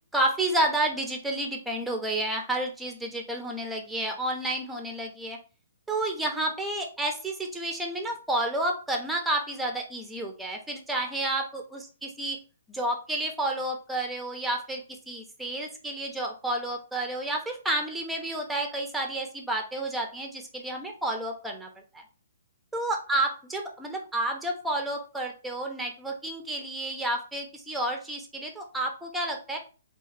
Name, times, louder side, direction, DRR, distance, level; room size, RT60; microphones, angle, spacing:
voice 1, 0.1-5.4 5.9-12.4 12.7-21.7 21.9-22.0 22.7-29.6, right 1 dB, 5° right, 2 dB, 0.6 m, -30 dB
2.7 x 2.4 x 3.1 m, 0.36 s
hypercardioid pair, 140°, 0 cm